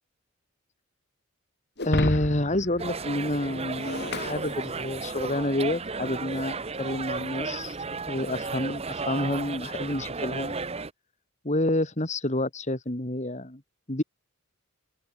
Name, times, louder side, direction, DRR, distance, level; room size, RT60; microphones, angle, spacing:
Shatter, 1.8-5.3, left 2 dB, 50° left, 2.5 m, -34 dB
voice 1, 1.8-7.8 8.1-10.6 11.4-13.6 13.9-14.0, left 1 dB, 30° left, 2.2 m, -28 dB
sound 1, 2.8-10.9, right 4 dB, 30° right, 0.8 m, -34 dB
open air
head